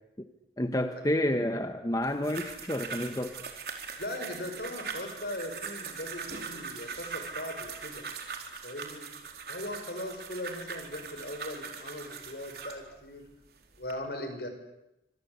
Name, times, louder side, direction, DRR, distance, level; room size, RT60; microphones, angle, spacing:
voice 1, 0.6-3.4, left 1 dB, 20° left, 7 dB, 1.2 m, -29 dB
sound 1, 2.0-12.8 13.5-13.9, right 5 dB, 60° right, 4.3 m, -41 dB
voice 2, 4.0-8.0 8.6-9.1 9.5-13.3 13.8-14.5, left 1 dB, 65° left, 7 dB, 6.2 m, -39 dB
27.5 x 26.5 x 8.3 m, 0.89 s
head